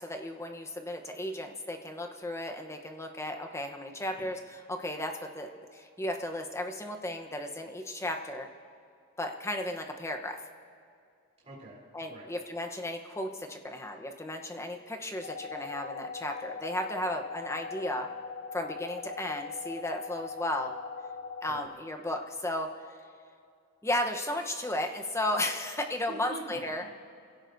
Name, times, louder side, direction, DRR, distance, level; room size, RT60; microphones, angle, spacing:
voice 1, 0.0-8.5 9.2-10.4 11.9-18.1 18.5-20.7 21.4-23.0 23.8-26.8, left 1 dB, 15° left, 4 dB, 1.0 m, -34 dB
voice 2, 11.4-11.8 12.1-12.3 21.5-21.6 26.1-26.9, right 2 dB, 30° right, -6 dB, 3.8 m, -44 dB
sound 1, 15.2-21.7, left 5 dB, 40° left, 0.6 m, -41 dB
26.5 x 17.0 x 2.7 m, 2.4 s
head